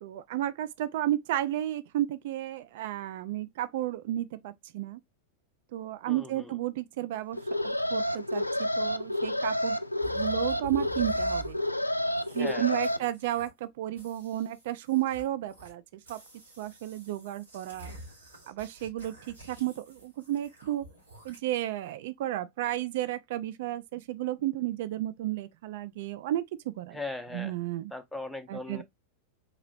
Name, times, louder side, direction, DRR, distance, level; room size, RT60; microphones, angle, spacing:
voice 1, 0.0-5.0 5.7-7.4 7.9-9.8 10.0-11.6 12.3-15.8 16.1-16.2 16.6-17.9 18.5-20.8 21.2-27.0 27.3-27.9 28.5-28.8, right 14 dB, 55° right, 0.4 m, -32 dB
voice 2, 6.0-6.6 12.3-13.1 26.9-27.5 27.9-28.8, left 2 dB, ahead, 0.7 m, -39 dB
Alarm, 7.3-13.0, left 1 dB, 85° left, 0.3 m, -29 dB
sound 1, 10.0-11.7 12.2-12.6 12.8-13.6 14.0-15.7 16.0-21.4, right 1 dB, 75° right, 2.7 m, -48 dB
4.0 x 3.0 x 2.5 m
figure-of-eight pair, 90°, 0 cm